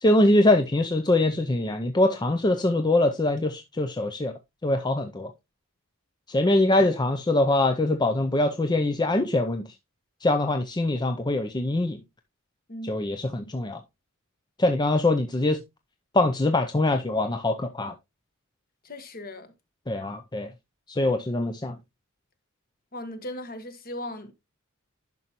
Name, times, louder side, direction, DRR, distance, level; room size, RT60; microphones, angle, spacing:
voice 1, 0.0-4.3 4.6-5.3 6.3-9.7 10.2-12.0 12.8-13.8 14.6-15.6 16.1-17.9 19.9-20.5 20.9-21.8, left 2 dB, 20° left, 0.6 m, -23 dB
voice 2, 18.8-19.5 22.9-24.3, left 1 dB, 45° left, 1.4 m, -37 dB
10.5 x 5.8 x 3.0 m
head